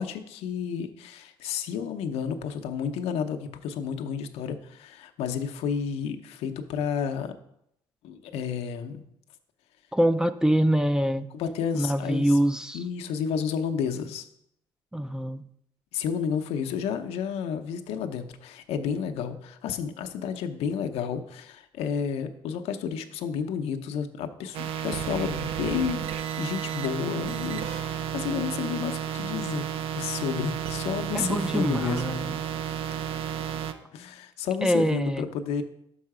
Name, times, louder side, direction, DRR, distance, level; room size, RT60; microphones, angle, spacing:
voice 1, 0.0-7.3 8.0-9.0 11.3-12.4 12.7-14.3 15.9-26.1 26.4-32.2 33.9-35.6, left 7 dB, 85° left, 6 dB, 0.6 m, -31 dB
voice 2, 9.9-11.3 11.7-12.8 14.9-15.4 31.1-32.4 34.6-35.3, right 1 dB, 5° right, 12 dB, 0.3 m, -24 dB
sound 1, 24.5-33.7, right 9 dB, 70° right, 0.5 m, -32 dB
5.5 x 5.5 x 4.8 m, 0.76 s
cardioid pair, 105°, 10 cm